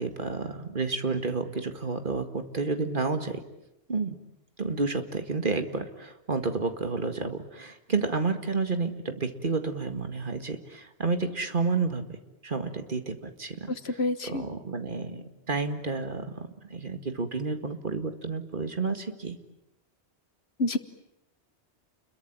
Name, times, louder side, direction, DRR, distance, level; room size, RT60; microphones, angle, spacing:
voice 1, 0.0-3.4 3.9-4.2 4.6-12.0 12.4-13.7 14.3-19.4, right 4 dB, 50° right, 8 dB, 2.1 m, -30 dB
voice 2, 13.7-14.4 20.6-20.8, left 2 dB, 70° left, 12 dB, 1.6 m, -28 dB
29.5 x 22.5 x 8.9 m, 0.87 s
omnidirectional pair, 1.1 m